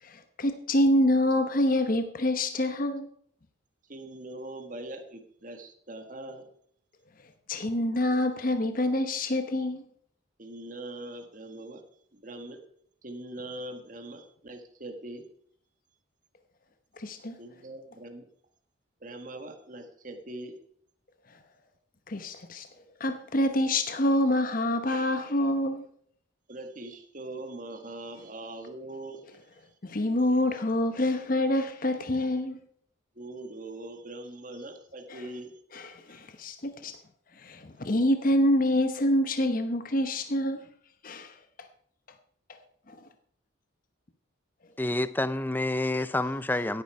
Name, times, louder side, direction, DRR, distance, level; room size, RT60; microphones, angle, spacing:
voice 1, 0.0-3.1 7.5-9.8 17.0-17.4 22.1-22.7 23.0-25.8 29.8-32.6 35.1-35.3 35.7-36.9 37.4-40.6 41.0-41.3 42.9-43.0, left 1 dB, 45° left, 1.0 m, -26 dB
voice 2, 3.9-6.5 10.4-11.8 12.1-12.6 13.0-15.3 17.4-18.3 19.0-20.6 26.5-29.3 29.5-29.7 33.1-35.6, right 1 dB, 40° right, 1.5 m, -42 dB
voice 3, 44.8-46.8, left 2 dB, 10° left, 0.5 m, -28 dB
16.5 x 9.7 x 4.8 m
head